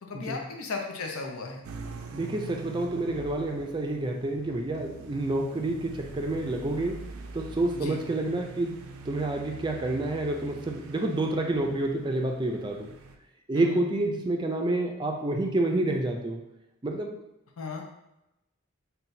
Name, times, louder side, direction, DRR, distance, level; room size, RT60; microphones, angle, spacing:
voice 1, 0.0-1.6 7.7-8.0 13.5-13.8 17.6-17.8, left 4 dB, 85° left, 2 dB, 0.7 m, -35 dB
sound 1, 1.6-13.2, right 4 dB, 85° right, 0.4 m, -44 dB
voice 2, 2.1-7.0 7.3-8.8 9.1-12.9 13.5-16.4 16.8-17.2, right 2 dB, 20° right, 2 dB, 0.4 m, -28 dB
5.6 x 2.3 x 2.6 m, 0.90 s
head